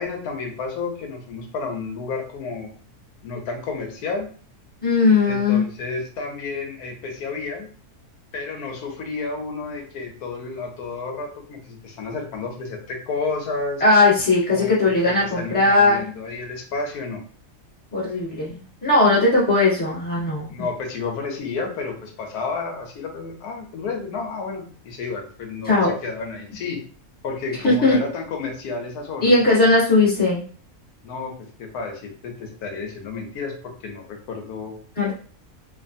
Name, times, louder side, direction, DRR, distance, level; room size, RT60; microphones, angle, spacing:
voice 1, 0.0-2.7 3.2-4.3 5.2-7.7 8.3-13.8 14.5-17.2 20.5-26.8 27.2-29.4 31.0-34.8, left 4 dB, 80° left, 3 dB, 1.2 m, -31 dB
voice 2, 4.8-5.6 13.8-16.0 17.9-20.7 25.6-25.9 27.6-28.0 29.2-30.4 35.0-35.1, left 3 dB, 5° left, -8 dB, 0.9 m, -18 dB
3.3 x 2.2 x 2.5 m, 0.43 s
omnidirectional pair, 1.6 m